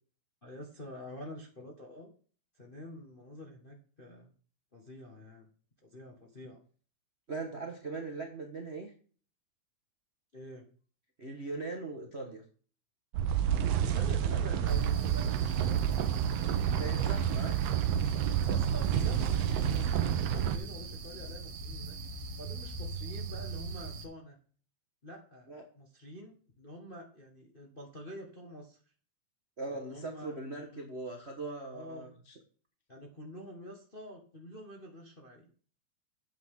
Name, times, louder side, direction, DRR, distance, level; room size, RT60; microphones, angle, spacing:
voice 1, 0.4-2.1 2.6-4.3 4.7-5.5 5.8-6.6 10.3-10.6 13.8-15.8 18.4-22.0 22.4-24.4 25.0-28.8 29.7-30.3 30.7-30.8 31.7-32.0 32.9-35.5, equal, 30° left, 0 dB, 1.0 m, -47 dB
voice 2, 7.3-8.9 11.2-12.4 16.8-17.6 25.5-25.6 29.6-32.4, right 3 dB, 45° right, 1 dB, 0.8 m, -40 dB
sound 1, 13.1-20.6, right 9 dB, 70° right, 1.7 m, -29 dB
sound 2, 14.7-24.1, right 3 dB, 85° right, 2.9 m, -41 dB
9.5 x 8.1 x 3.7 m, 0.42 s
omnidirectional pair, 3.5 m